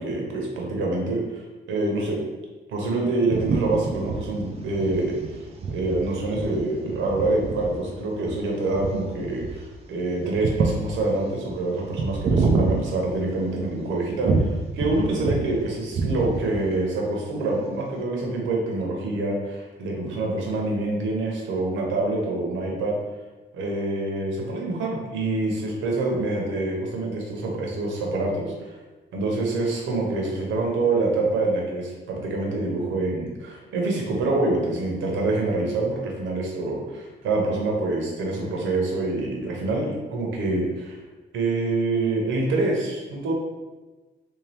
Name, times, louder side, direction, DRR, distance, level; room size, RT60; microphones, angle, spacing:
voice 1, 0.0-1.4 1.7-2.2 2.7-5.4 5.7-23.0 23.5-28.8 29.1-41.0 41.3-43.3, right 2 dB, 80° right, -1 dB, 0.9 m, -26 dB
sound 1, 3.3-13.7 14.2-15.6 15.8-16.7, right 4 dB, 30° right, 0.4 m, -27 dB
3.4 x 2.8 x 3.3 m, 1.2 s
cardioid pair, 155°, 19 cm